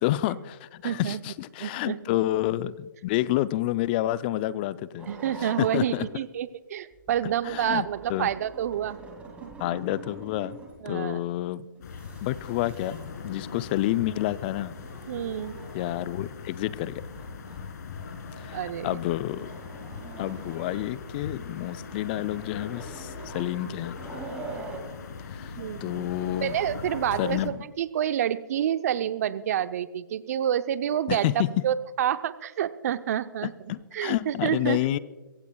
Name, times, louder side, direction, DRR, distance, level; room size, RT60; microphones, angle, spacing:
voice 1, 0.0-5.1 5.4-6.0 7.4-8.3 9.6-10.6 10.9-11.7 12.2-14.7 15.7-17.0 18.4-19.5 20.2-24.0 25.3-25.5 25.8-26.5 27.2-27.6 31.1-31.6 33.7-35.0, left 15 dB, 25° left, 17 dB, 0.5 m, -29 dB
voice 2, 0.8-1.2 1.6-2.0 5.1-9.0 9.4-9.5 10.8-11.2 15.1-15.6 18.5-19.0 25.6-26.1 26.4-33.5 33.9-34.8, right 10 dB, 45° right, 13 dB, 0.7 m, -28 dB
sound 1, 5.0-6.2 6.9-10.9 11.8-13.3 14.6-16.1 16.7-16.8 17.1-17.7 17.9-18.6 19.1-21.1 21.6-24.8, right 3 dB, 10° right, 2.5 m, -44 dB
sound 2, 11.8-27.5, left 5 dB, 55° left, 2.0 m, -40 dB
23.0 x 16.0 x 2.3 m, 1.2 s
hypercardioid pair, 140°, 11 cm